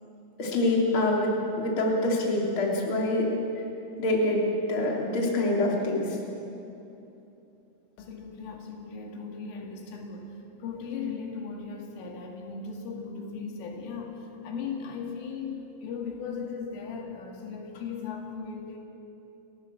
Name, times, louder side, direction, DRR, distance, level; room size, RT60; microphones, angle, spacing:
voice 1, 0.4-3.3 4.0-6.2, left 2 dB, 30° left, -2 dB, 3.5 m, -25 dB
voice 2, 8.0-10.3 10.6-18.8, left 5 dB, 85° left, 1 dB, 4.8 m, -37 dB
30.0 x 16.0 x 7.6 m, 2.9 s
omnidirectional pair, 5.6 m